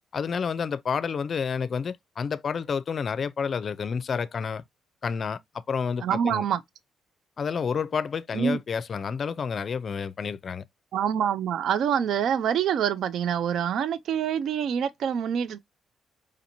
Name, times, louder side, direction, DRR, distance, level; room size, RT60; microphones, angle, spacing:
voice 1, 0.1-4.6 5.0-6.5 7.4-10.6, left 6 dB, 45° left, 0.4 m, -29 dB
voice 2, 6.0-6.6 8.3-8.6 10.9-15.6, right 8 dB, 70° right, 0.3 m, -26 dB
5.0 x 2.8 x 2.6 m
cardioid pair, 90°, 0 cm